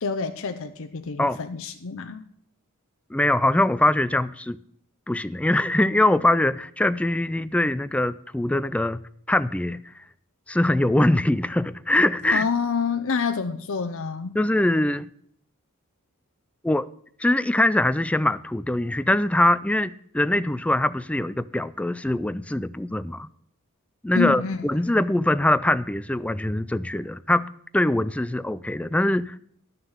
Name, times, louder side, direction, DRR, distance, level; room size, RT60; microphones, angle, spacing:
voice 1, 0.0-2.3 12.3-14.4 24.1-24.6 24.9-25.0, left 5 dB, 65° left, 0.6 m, -28 dB
voice 2, 3.1-4.6 5.1-9.0 9.3-9.9 10.5-12.5 14.3-15.1 16.6-16.9 17.2-23.3 24.0-27.5 27.7-29.4, left 1 dB, 5° left, 0.3 m, -22 dB
11.0 x 6.8 x 7.1 m
head